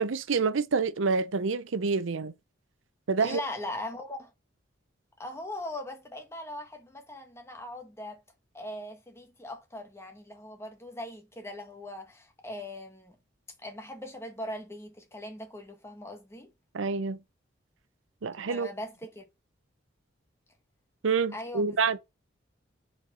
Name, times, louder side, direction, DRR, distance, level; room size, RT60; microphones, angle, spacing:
voice 1, 0.0-2.3 3.1-3.4 16.7-17.2 18.2-18.7 21.0-22.0, right 5 dB, 85° right, 0.6 m, -27 dB
voice 2, 3.2-4.3 5.2-8.2 8.5-13.2 13.6-16.5 18.5-19.2 21.3-21.8, left 1 dB, 15° left, 1.4 m, -40 dB
6.3 x 4.5 x 6.1 m
head